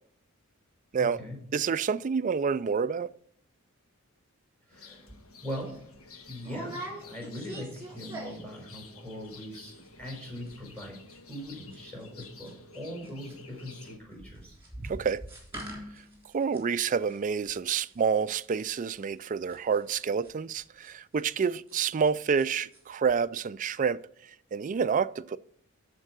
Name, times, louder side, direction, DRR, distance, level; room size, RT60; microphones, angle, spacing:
voice 1, 1.0-1.4 4.7-5.1 5.4-5.7 6.3-11.0 11.3-14.5, equal, 5° left, 4.3 m, -41 dB
voice 2, 1.5-3.1 14.8-15.2 16.3-25.4, right 6 dB, 40° right, 0.3 m, -28 dB
sound 1, 4.7-14.0, left 3 dB, 85° left, 1.4 m, -51 dB
sound 2, 5.1-5.2 5.6-5.8 6.4-8.6 8.8-9.3 9.5-9.6 9.8-10.2 10.5-12.8 13.0-22.1 22.4-22.8 23.1-23.2, right 1 dB, 10° right, 3.3 m, -44 dB
13.0 x 4.6 x 6.0 m
head